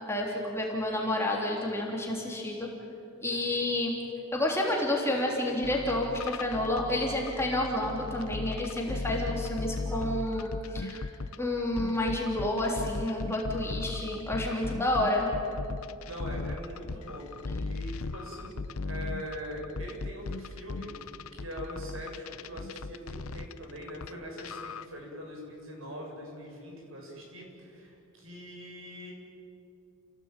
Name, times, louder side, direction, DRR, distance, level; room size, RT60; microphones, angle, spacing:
voice 1, 0.0-2.7 3.2-4.0 4.3-11.1 11.4-15.3, left 1 dB, 10° left, -1 dB, 3.4 m, -30 dB
sound 1, 5.6-11.4 11.8-24.1 24.4-24.9, left 3 dB, 80° left, 0.8 m, -37 dB
voice 2, 16.1-17.3 17.6-18.6 18.9-20.9 21.4-29.1, equal, 65° right, 0 dB, 7.1 m, -42 dB
29.5 x 17.5 x 9.1 m, 2.6 s
head